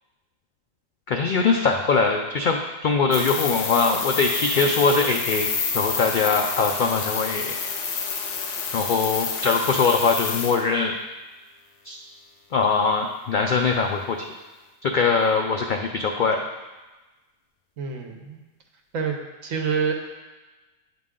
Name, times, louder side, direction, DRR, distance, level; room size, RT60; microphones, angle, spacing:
voice 1, 1.1-5.5 5.7-7.6 8.7-10.9 11.8-12.0 12.5-14.2 14.8-16.4, left 4 dB, 85° left, 3 dB, 0.4 m, -22 dB
sound 1, 3.1-10.6, left 5 dB, 65° left, 0.9 m, -29 dB
voice 2, 17.8-18.4 18.9-19.2 19.4-19.9, right 6 dB, 75° right, 3 dB, 1.2 m, -26 dB
9.3 x 3.9 x 3.7 m, 1.2 s
omnidirectional pair, 1.4 m